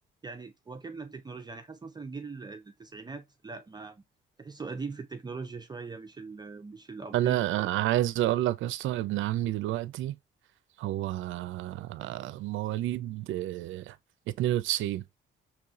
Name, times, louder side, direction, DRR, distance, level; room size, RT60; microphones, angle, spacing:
voice 1, 0.2-4.0 4.4-7.7, right 4 dB, 20° right, 0.5 m, -41 dB
voice 2, 7.1-10.2 10.8-14.0 14.3-15.0, right 14 dB, 80° right, 0.4 m, -29 dB
4.7 x 3.1 x 2.3 m
cardioid pair, 90°, 20 cm